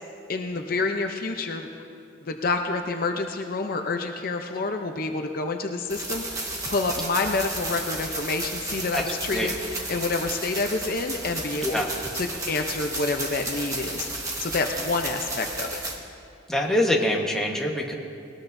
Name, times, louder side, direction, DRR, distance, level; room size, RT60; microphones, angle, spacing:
voice 1, 0.3-1.7 2.2-11.8 12.1-14.1 14.4-15.8, left 3 dB, 50° left, 4 dB, 0.7 m, -28 dB
sound 1, 5.9-16.0, right 2 dB, 15° right, 1.3 m, -33 dB
voice 2, 8.9-9.5 11.6-11.9 16.5-17.9, left 1 dB, 5° left, -1 dB, 1.2 m, -25 dB
20.0 x 18.5 x 2.7 m, 2.6 s
head